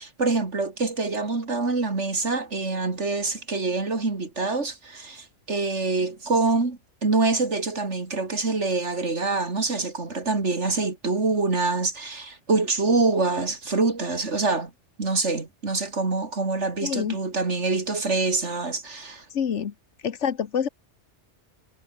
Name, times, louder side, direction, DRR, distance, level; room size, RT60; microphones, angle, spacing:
voice 1, 0.0-14.7 15.0-19.2, right 3 dB, 75° right, 3.3 m, -25 dB
voice 2, 16.8-17.2 19.3-19.7 20.0-20.7, left 7 dB, 80° left, 1.4 m, -26 dB
omnidirectional pair, 1.2 m